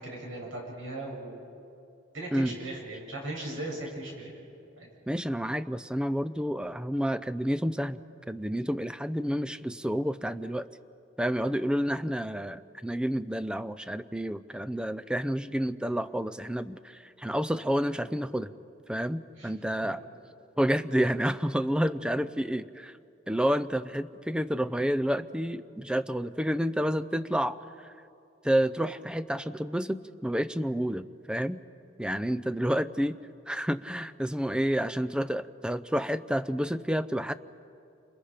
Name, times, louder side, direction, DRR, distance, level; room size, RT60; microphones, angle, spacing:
voice 1, 0.0-1.4 2.1-4.3 4.8-4.9 19.4-19.5 19.8-19.9, right 1 dB, 80° right, -2 dB, 7.6 m, -38 dB
voice 2, 5.1-8.0 8.3-10.7 11.2-18.5 18.9-20.0 20.6-22.9 23.3-27.9 28.4-31.6 32.0-33.2 33.5-37.3, equal, 5° right, 13 dB, 0.5 m, -29 dB
30.0 x 27.0 x 5.1 m, 2.6 s
head